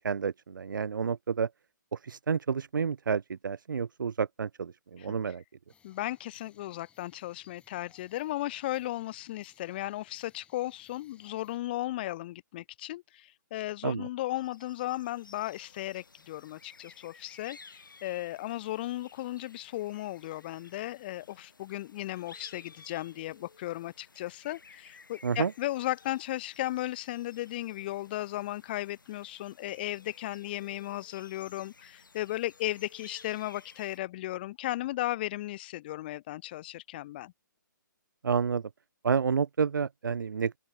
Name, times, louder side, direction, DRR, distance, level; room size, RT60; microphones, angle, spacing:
voice 1, 0.0-1.5 1.9-5.4 13.8-14.1 25.2-25.5 38.2-38.6 39.0-40.6, right 6 dB, 80° right, 0.5 m, -30 dB
sound 1, 5.7-11.6, left 7 dB, 10° left, 3.8 m, -64 dB
voice 2, 5.8-37.3, left 16 dB, 30° left, 0.4 m, -35 dB
sound 2, 14.3-34.0, left 4 dB, 85° left, 2.2 m, -56 dB
open air
hypercardioid pair, 145°, 11 cm